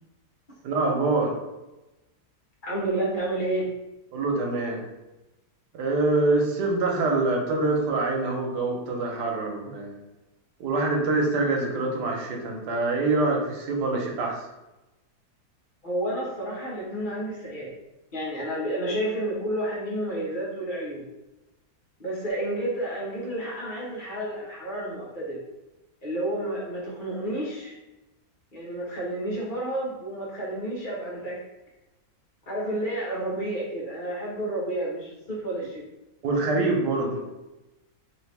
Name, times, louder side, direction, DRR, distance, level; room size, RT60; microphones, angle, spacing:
voice 1, 0.6-1.3 4.1-4.8 5.7-10.0 10.6-14.4 36.2-37.2, right 3 dB, 85° right, 0 dB, 1.4 m, -25 dB
voice 2, 2.6-3.7 15.8-17.7 18.1-21.0 22.0-25.4 26.0-27.8 28.5-31.4 32.5-35.9, right 1 dB, 35° left, -4 dB, 1.0 m, -30 dB
3.9 x 2.9 x 3.3 m, 1.0 s
omnidirectional pair, 1.7 m